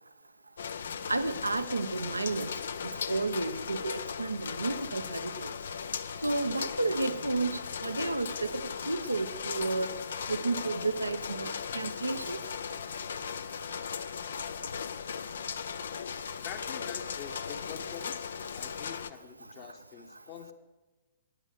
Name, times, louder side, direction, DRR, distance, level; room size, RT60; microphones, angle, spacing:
sound 1, 0.6-19.1, left 6 dB, 65° left, 0.5 m, -37 dB
voice 1, 1.1-2.5 3.1-5.5 6.2-9.9 10.3-12.4, right 3 dB, 85° right, 11 dB, 0.6 m, -32 dB
voice 2, 16.4-20.5, left 8 dB, 40° left, 7 dB, 1.2 m, -46 dB
14.0 x 9.8 x 6.7 m, 1.2 s
figure-of-eight pair, 110°, 0 cm